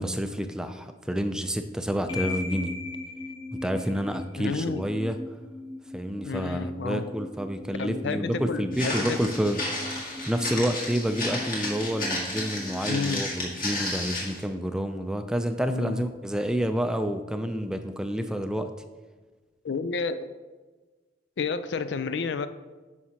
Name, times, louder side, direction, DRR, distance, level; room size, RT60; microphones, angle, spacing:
voice 1, 0.0-2.8 3.5-5.2 5.9-9.6 9.8-18.7, equal, 5° right, 7 dB, 0.3 m, -29 dB
sound 1, 2.1-14.1, left 2 dB, 30° left, 0.9 m, -40 dB
voice 2, 4.4-4.8 6.2-7.0 7.8-9.2 12.9-13.2 15.7-16.0 19.6-20.3 21.4-22.5, left 4 dB, 80° left, 11 dB, 0.4 m, -30 dB
Walk footsteps, 8.7-14.4, left 2 dB, 50° left, 1.8 m, -32 dB
9.3 x 5.7 x 2.9 m, 1.3 s
head